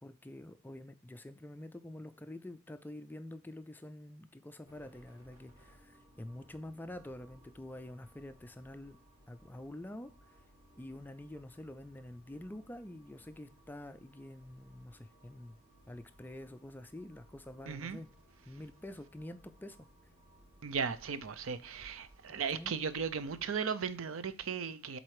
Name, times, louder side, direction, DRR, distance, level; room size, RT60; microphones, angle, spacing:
voice 1, 0.0-9.0 9.3-10.4 10.8-15.6 15.9-18.1 18.5-19.9 22.3-22.8, left 1 dB, 10° left, 0.4 m, -47 dB
sound 1, 4.6-23.6, equal, 15° right, 3.2 m, -62 dB
voice 2, 17.7-18.0 20.6-25.0, right 6 dB, 75° right, 0.5 m, -36 dB
7.5 x 4.0 x 4.8 m
head